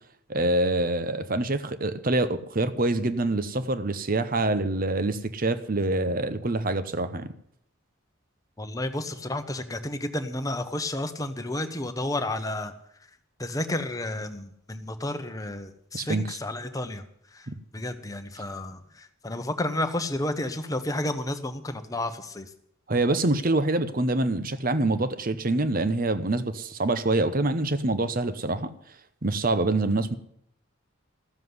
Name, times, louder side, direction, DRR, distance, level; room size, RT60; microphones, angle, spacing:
voice 1, 0.3-7.3 15.9-16.4 17.5-17.6 22.9-28.7 29.2-30.1, right 2 dB, 40° right, 13 dB, 0.9 m, -25 dB
voice 2, 8.6-12.8 13.4-17.0 17.3-22.5, left 1 dB, 15° left, 7 dB, 1.0 m, -31 dB
14.5 x 7.4 x 9.7 m, 0.70 s
head